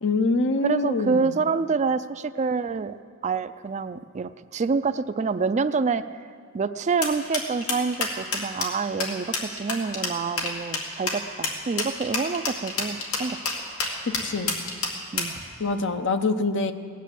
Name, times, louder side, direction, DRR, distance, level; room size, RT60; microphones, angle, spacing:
voice 1, 0.0-1.3 14.2-14.5 15.6-16.7, left 3 dB, 60° left, 9 dB, 0.8 m, -25 dB
voice 2, 0.6-2.9 3.2-6.0 6.5-13.4 15.1-15.3, right 4 dB, 35° right, 11 dB, 0.4 m, -27 dB
sound 1, 7.0-15.4, left 4 dB, 90° left, 2.3 m, -28 dB
17.5 x 10.5 x 7.6 m, 2.1 s
head